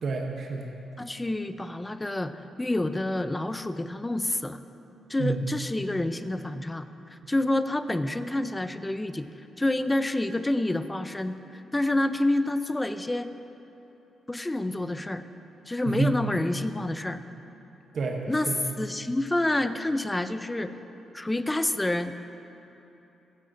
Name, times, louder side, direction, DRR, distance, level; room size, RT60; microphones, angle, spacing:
voice 1, 0.0-0.7 5.2-5.4 7.2-7.3 15.8-16.2 17.9-18.7, right 3 dB, 55° right, 1 dB, 0.8 m, -29 dB
voice 2, 1.0-4.6 5.1-13.3 14.3-15.2 15.7-17.2 18.3-18.5 18.8-20.8 21.1-22.1, left 1 dB, 15° left, 11 dB, 0.3 m, -28 dB
15.0 x 7.9 x 2.6 m, 3.0 s
cardioid pair, 100°, 0 cm